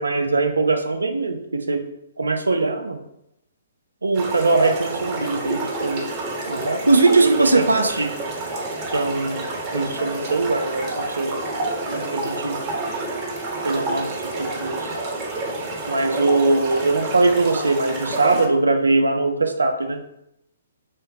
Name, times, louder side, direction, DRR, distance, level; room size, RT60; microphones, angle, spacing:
voice 1, 0.0-1.8 2.2-3.0 4.0-6.1 6.5-8.1 8.9-11.4 11.8-12.6 13.6-14.9 15.9-20.0, right 3 dB, 80° right, 6 dB, 0.5 m, -21 dB
sound 1, 4.1-18.5, right 2 dB, 30° right, 1.0 m, -29 dB
4.0 x 2.1 x 4.0 m, 0.82 s
figure-of-eight pair, 125°, 0 cm